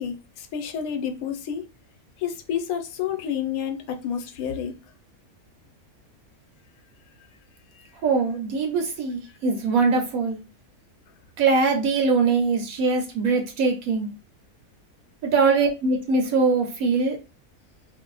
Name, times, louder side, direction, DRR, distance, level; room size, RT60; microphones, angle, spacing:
voice 1, 0.0-1.7 2.2-4.7 7.8-7.9, left 8 dB, 75° left, 1.0 m, -30 dB
voice 2, 8.0-10.4 11.4-14.1 15.2-17.2, right 4 dB, 75° right, 1.1 m, -22 dB
2.6 x 2.0 x 3.8 m
omnidirectional pair, 1.5 m